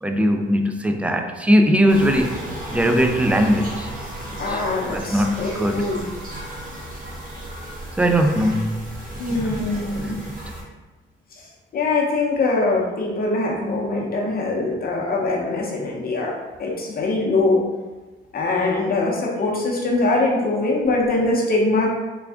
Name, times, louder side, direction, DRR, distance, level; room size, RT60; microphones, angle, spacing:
voice 1, 0.0-2.4 2.7-3.9 4.5-4.6 4.9-5.9 8.0-8.9 9.3-9.6 10.0-10.5, equal, 5° right, 5 dB, 0.3 m, -20 dB
sound 1, 1.9-10.6, right 1 dB, 45° right, 1.3 m, -34 dB
voice 2, 4.4-6.0 9.2-10.2 11.7-16.3 16.6-17.6 18.3-21.9, left 2 dB, 50° left, -2 dB, 0.8 m, -22 dB
3.5 x 2.4 x 3.4 m, 1.2 s
cardioid pair, 90°, 20 cm